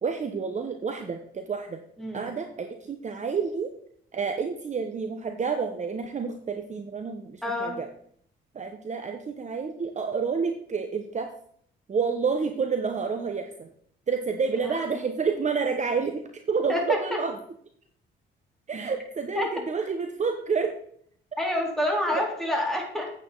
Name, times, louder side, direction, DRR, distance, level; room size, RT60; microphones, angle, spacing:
voice 1, 0.0-1.8 2.1-3.7 4.1-7.9 8.5-11.3 11.9-13.7 14.1-17.4 18.7-20.7 22.1-22.2, right 5 dB, 35° right, 5 dB, 1.0 m, -29 dB
voice 2, 2.0-2.3 7.4-7.8 14.6-14.7 16.7-17.0 19.3-19.5 21.4-23.1, left 1 dB, ahead, -1 dB, 3.6 m, -27 dB
8.9 x 8.7 x 3.9 m, 0.63 s
cardioid pair, 90°, 20 cm